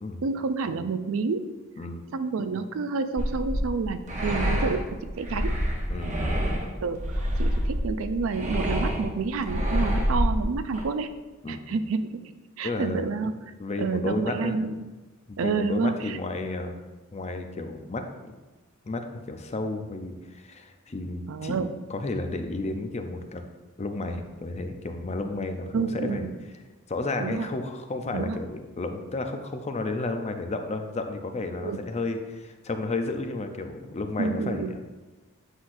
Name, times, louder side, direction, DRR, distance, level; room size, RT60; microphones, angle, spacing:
voice 1, 0.2-1.5 2.1-5.6 6.8-11.1 11.5-13.4 13.8-14.9 15.4-16.2 21.3-21.8 25.7-26.4 27.2-27.5 28.1-28.4 31.6-31.9 34.2-34.8, right 4 dB, 70° right, 10 dB, 0.4 m, -29 dB
sound 1, 3.2-10.8, equal, 35° right, 0.9 m, -27 dB
voice 2, 5.9-6.4 11.4-11.8 12.6-13.0 13.6-14.6 15.3-16.7 17.1-18.3 18.8-21.6 21.9-23.4 23.8-26.3 26.9-34.8, left 2 dB, 30° left, 6 dB, 0.5 m, -32 dB
8.0 x 5.7 x 2.6 m, 1.2 s
head